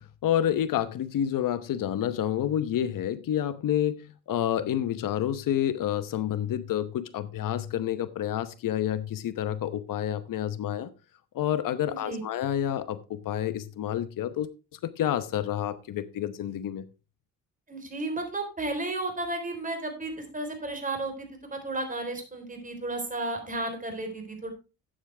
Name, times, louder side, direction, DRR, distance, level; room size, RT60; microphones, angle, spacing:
voice 1, 0.0-10.9 11.3-16.8, left 10 dB, 75° left, 1.0 m, -29 dB
voice 2, 11.9-12.2 17.7-24.5, right 2 dB, 25° right, 3.9 m, -33 dB
12.5 x 8.8 x 3.4 m
cardioid pair, 110°, 33 cm